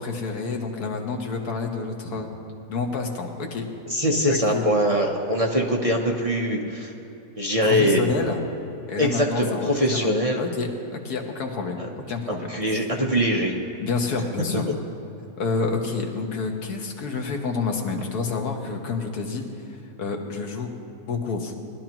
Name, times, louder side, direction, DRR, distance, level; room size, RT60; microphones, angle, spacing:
voice 1, 0.0-2.3 2.7-3.6 4.3-4.7 7.6-8.4 8.9-10.1 10.4-12.5 13.8-14.6 15.4-19.4 20.0-20.7 21.1-21.6, left 4 dB, 85° left, 2 dB, 1.7 m, -28 dB
voice 2, 3.9-6.9 7.4-8.1 9.0-10.4 11.8-11.9 12.5-13.5 14.5-14.6, equal, 30° right, -1 dB, 0.8 m, -22 dB
20.0 x 12.0 x 3.0 m, 3.0 s
omnidirectional pair, 1.6 m